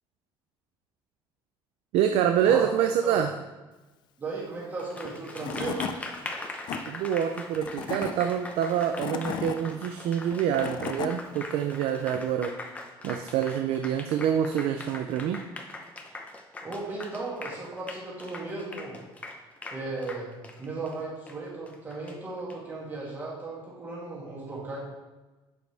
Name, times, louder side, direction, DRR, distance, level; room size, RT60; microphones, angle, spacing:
voice 1, 1.9-3.3 6.9-12.6 13.0-15.4, right 9 dB, 80° right, 6 dB, 0.6 m, -26 dB
voice 2, 4.2-5.9 16.6-19.0 19.7-24.8, right 3 dB, 20° right, -6 dB, 2.6 m, -36 dB
Applause, 4.8-22.5, left 2 dB, 15° left, 0.8 m, -41 dB
Tools / Wood, 5.0-5.1 5.4-6.0 6.4-6.8 7.5-8.1 8.8-9.6 10.3-11.1, left 7 dB, 50° left, 0.6 m, -34 dB
11.0 x 7.9 x 3.5 m, 1.2 s
cardioid pair, 180°, 10 cm